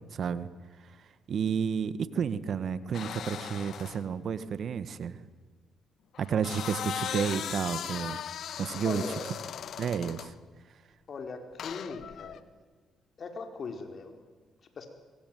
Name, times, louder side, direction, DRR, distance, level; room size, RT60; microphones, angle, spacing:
voice 1, 0.1-0.5 0.8-0.9 1.3-5.3 6.2-8.2 8.6-9.2 9.8-10.3, right 7 dB, 65° right, 13 dB, 1.6 m, -31 dB
sound 1, 2.9-4.0 6.1-10.3 11.6-12.4, left 9 dB, 70° left, 1.4 m, -38 dB
voice 2, 8.8-9.3 11.1-12.4 13.2-14.1 14.8-14.9, left 4 dB, 55° left, 5 dB, 4.8 m, -39 dB
24.5 x 24.0 x 9.4 m, 1.4 s
cardioid pair, 70°, 0 cm